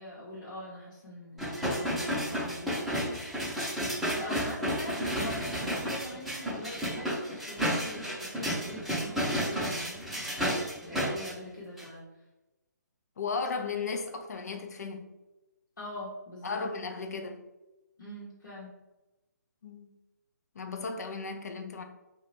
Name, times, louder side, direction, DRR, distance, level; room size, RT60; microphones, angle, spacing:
voice 1, 0.0-3.0 4.1-12.0 15.8-16.6 18.0-18.8, left 1 dB, 75° left, 0.9 m, -43 dB
sound 1, 1.4-11.3 11.8-11.9, equal, ahead, 0.6 m, -32 dB
voice 2, 13.2-15.1 16.4-17.4 19.6-20.0 20.6-21.8, left 4 dB, 60° left, 0.4 m, -35 dB
2.7 x 2.3 x 3.1 m
figure-of-eight pair, 140°, 10 cm